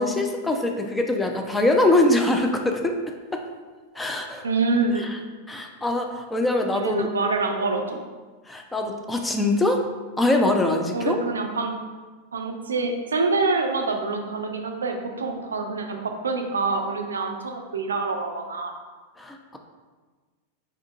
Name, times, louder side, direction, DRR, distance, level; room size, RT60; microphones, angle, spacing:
voice 1, 0.0-3.0 3.3-3.4 4.0-4.4 5.0-5.2 5.5-7.1 8.5-9.8 10.2-11.2 19.2-19.6, left 2 dB, 10° left, 3 dB, 0.4 m, -23 dB
voice 2, 4.4-5.1 6.7-8.0 10.9-11.8 12.3-18.7, right 3 dB, 70° right, 4 dB, 0.4 m, -26 dB
4.5 x 3.6 x 2.5 m, 1.4 s
figure-of-eight pair, 90°, 0 cm